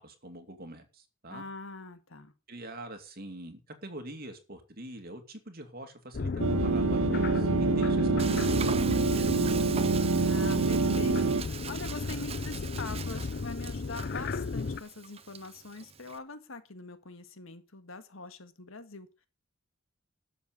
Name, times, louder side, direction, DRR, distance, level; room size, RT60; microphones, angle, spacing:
voice 1, 0.0-1.4 2.5-9.7, right 1 dB, 50° right, 6 dB, 2.7 m, -45 dB
voice 2, 1.3-2.3 10.2-19.3, left 3 dB, 80° left, 10 dB, 1.8 m, -44 dB
sound 1, 6.1-14.8, left 4 dB, 50° left, 0.5 m, -33 dB
sound 2, 6.4-11.4, right 4 dB, 90° right, 0.5 m, -26 dB
Frying (food), 8.2-16.2, right 7 dB, 30° right, 0.8 m, -42 dB
12.5 x 7.0 x 6.8 m, 0.31 s
head